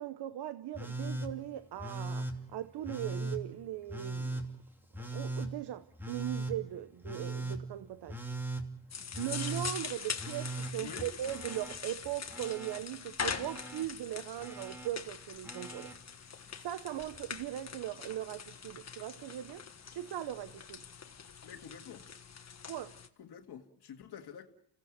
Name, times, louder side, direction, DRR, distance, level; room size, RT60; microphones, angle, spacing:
voice 1, 0.0-4.4 5.1-8.2 9.2-15.9 16.6-19.7 19.9-20.8 22.7-23.0, right 13 dB, 80° right, 0.9 m, -39 dB
Telephone, 0.7-1.3 1.8-2.3 2.8-3.4 3.9-4.4 4.9-5.5 6.0-6.5 7.0-7.6 8.1-8.6 9.1-9.7 10.2-11.7 12.0-12.8 13.3-13.8 14.4-14.9 15.4-15.9 17.1-17.2, right 2 dB, 5° right, 2.7 m, -39 dB
sound 1, 8.9-23.1, left 6 dB, 40° left, 1.6 m, -43 dB
voice 2, 21.4-22.1 23.2-24.5, left 8 dB, 75° left, 1.8 m, -48 dB
28.5 x 17.0 x 7.5 m
cardioid pair, 80°, 40 cm